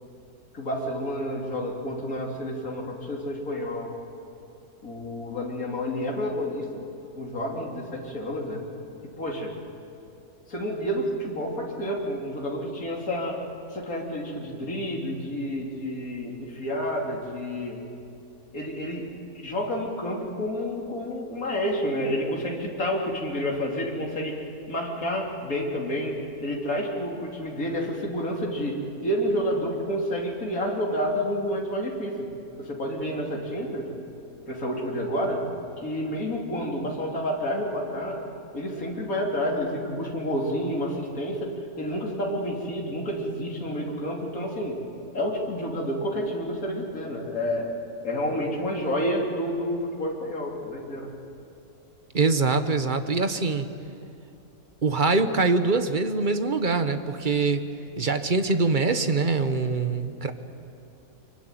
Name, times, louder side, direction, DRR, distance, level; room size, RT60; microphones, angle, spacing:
voice 1, 0.5-3.9 4.8-6.7 7.1-8.6 9.0-9.5 10.5-13.4 13.7-17.8 18.5-19.0 19.3-26.1 26.4-28.8 29.0-32.3 32.6-33.9 34.5-35.5 35.8-38.2 38.5-44.8 45.1-47.7 48.0-51.1, equal, 65° left, -1 dB, 3.6 m, -29 dB
voice 2, 52.1-53.7 54.8-57.6 58.0-60.3, right 3 dB, 35° right, 8 dB, 1.2 m, -23 dB
25.0 x 23.0 x 9.2 m, 2.6 s
omnidirectional pair, 1.6 m